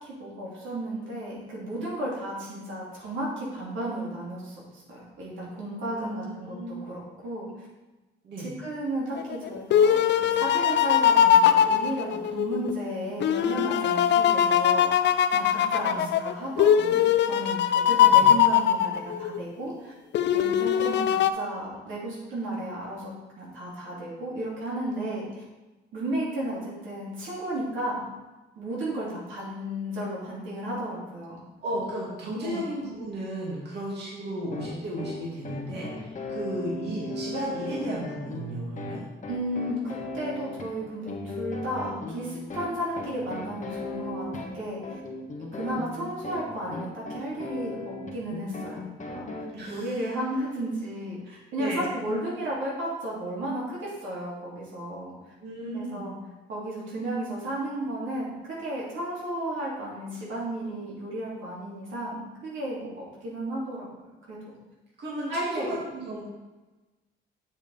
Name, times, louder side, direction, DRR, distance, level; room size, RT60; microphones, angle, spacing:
voice 1, 0.0-7.7 8.4-17.0 17.3-19.9 20.3-25.4 25.9-28.0 28.6-31.4 32.4-32.6 39.3-45.0 45.5-48.8 49.1-49.2 49.7-51.2 51.5-55.1 55.7-56.1 56.5-63.9 64.3-64.4 65.3-65.7, right 1 dB, 80° right, -6 dB, 2.7 m, -33 dB
voice 2, 5.9-6.8 8.2-8.5 15.8-16.0 18.1-18.3 31.6-39.0 49.5-49.9 51.2-51.8 55.4-56.1 65.0-66.2, right 1 dB, 60° right, -6 dB, 2.4 m, -34 dB
sound 1, 9.2-12.7 13.2-19.4 20.1-21.3, left 9 dB, 60° left, 0.5 m, -21 dB
sound 2, 34.5-49.5, left 2 dB, 40° left, 1.3 m, -37 dB
7.3 x 7.0 x 3.5 m, 1.1 s
cardioid pair, 90°, 20 cm